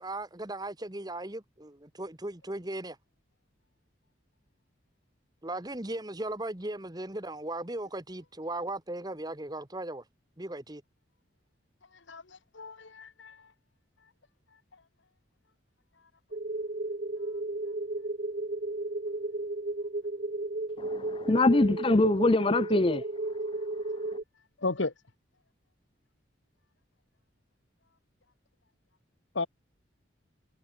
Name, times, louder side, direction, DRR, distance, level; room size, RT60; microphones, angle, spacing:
voice 1, 0.0-3.0 5.4-10.0 10.4-10.8, right 2 dB, 20° right, 1.4 m, -37 dB
voice 2, 12.1-13.4 24.6-24.9 29.3-29.5, left 3 dB, 70° left, 1.3 m, -34 dB
sound 1, 16.3-24.2, right 2 dB, 40° right, 0.8 m, -34 dB
voice 3, 20.8-23.0, left 2 dB, 25° left, 0.5 m, -24 dB
head